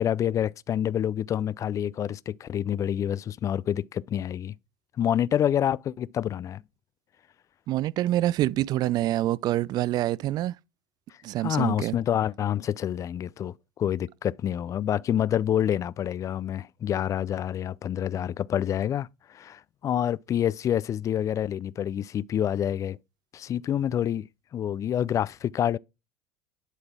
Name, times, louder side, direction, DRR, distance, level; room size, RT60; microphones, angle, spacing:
voice 1, 0.0-4.5 5.0-6.6 11.4-23.0 23.3-25.8, left 10 dB, 40° left, 0.4 m, -27 dB
voice 2, 7.7-10.5 11.2-12.0, right 14 dB, 50° right, 0.4 m, -26 dB
11.0 x 4.0 x 3.6 m
hypercardioid pair, 80°, 9 cm